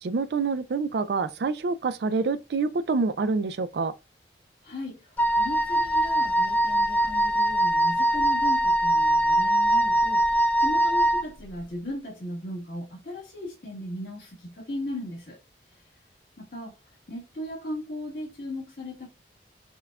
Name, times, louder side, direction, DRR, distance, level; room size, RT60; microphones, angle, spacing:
voice 1, 0.0-3.9, right 4 dB, 70° right, 0.4 m, -27 dB
voice 2, 4.6-15.4 16.4-16.8 17.1-19.1, left 1 dB, 60° left, 1.6 m, -37 dB
Wind instrument woodwind instrument, 5.2-11.3, right 1 dB, 10° left, 0.3 m, -22 dB
5.4 x 2.3 x 2.3 m
head